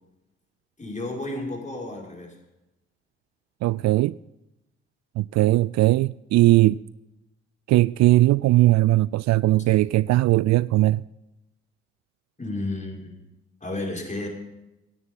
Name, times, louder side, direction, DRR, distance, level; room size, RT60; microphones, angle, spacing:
voice 1, 0.8-2.4 12.4-13.1 13.6-14.3, left 2 dB, 20° left, 5.7 m, -32 dB
voice 2, 3.6-4.2 5.2-6.8 7.7-11.0, right 17 dB, 55° right, 0.4 m, -19 dB
15.5 x 11.0 x 5.5 m
hypercardioid pair, 50°, 33 cm